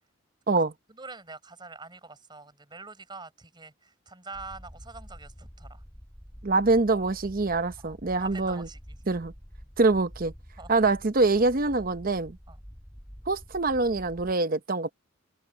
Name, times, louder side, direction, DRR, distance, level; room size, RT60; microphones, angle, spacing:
voice 1, 0.9-5.8 7.8-9.1 10.6-10.7 12.5-12.6, right 3 dB, 20° right, 5.9 m, -45 dB
sound 1, 4.3-14.4, equal, 5° left, 1.4 m, -47 dB
voice 2, 6.4-8.7 9.1-9.3 9.8-10.3 10.7-12.4 13.3-14.9, right 3 dB, 45° right, 0.8 m, -24 dB
head